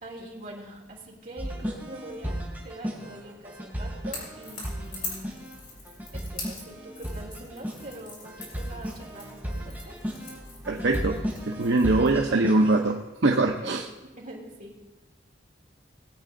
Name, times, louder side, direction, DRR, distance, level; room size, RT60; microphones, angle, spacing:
voice 1, 0.0-2.4 2.6-5.4 6.1-10.0 13.6-13.8 14.2-14.7, right 1 dB, 45° right, -3 dB, 3.0 m, -43 dB
sound 1, 1.4-12.9, equal, 10° right, 3.1 m, -35 dB
Crackle / Crack, 4.1-12.2, left 3 dB, 45° left, 4.6 m, -43 dB
voice 2, 10.7-13.9, right 2 dB, 70° right, 2 dB, 0.7 m, -23 dB
20.0 x 8.5 x 3.8 m, 1.2 s
head